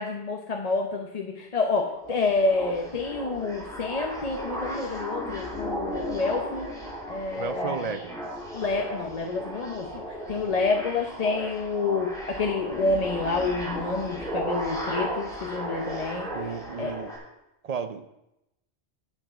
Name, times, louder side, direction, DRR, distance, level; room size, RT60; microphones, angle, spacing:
voice 1, 0.0-6.7 7.1-7.9 8.5-16.3 16.8-16.9, left 3 dB, 40° left, 1 dB, 0.8 m, -28 dB
sound 1, 1.9-17.2, equal, 5° left, 2.7 m, -35 dB
voice 2, 7.4-8.2 16.3-17.1 17.6-18.1, right 6 dB, 40° right, 9 dB, 0.7 m, -33 dB
10.5 x 4.9 x 7.4 m, 0.89 s
omnidirectional pair, 1.1 m